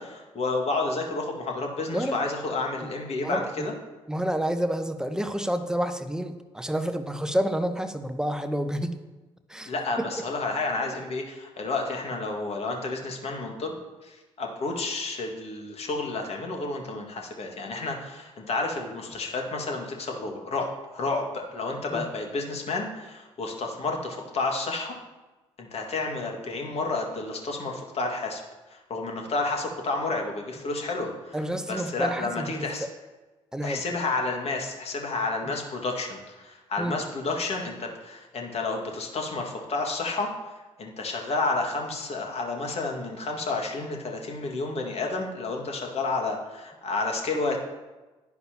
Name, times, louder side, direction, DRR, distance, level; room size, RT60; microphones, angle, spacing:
voice 1, 0.0-3.7 9.7-13.8 14.0-25.0 25.6-28.4 28.7-31.4 31.7-32.9 33.6-40.3 40.8-47.6, left 3 dB, 40° left, 1 dB, 2.1 m, -30 dB
voice 2, 3.2-3.7 4.1-9.0 9.5-9.7 10.0-10.1 21.9-22.1 31.3-32.7 33.5-33.8 36.8-37.0, equal, 5° right, 9 dB, 1.0 m, -29 dB
11.0 x 10.5 x 3.0 m, 1.2 s
figure-of-eight pair, 45°, 15 cm